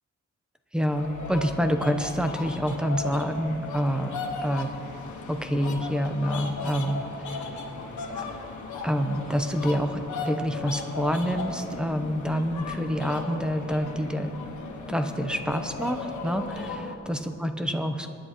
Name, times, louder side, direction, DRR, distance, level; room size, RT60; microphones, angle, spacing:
voice 1, 0.7-4.7 5.3-7.5 8.1-8.2 8.8-14.3 14.9-18.1, equal, 5° right, 6 dB, 0.8 m, -27 dB
sound 1, 0.9-16.9, left 3 dB, 85° left, 1.5 m, -36 dB
26.0 x 10.0 x 3.1 m, 2.6 s
wide cardioid pair, 135°, 29 cm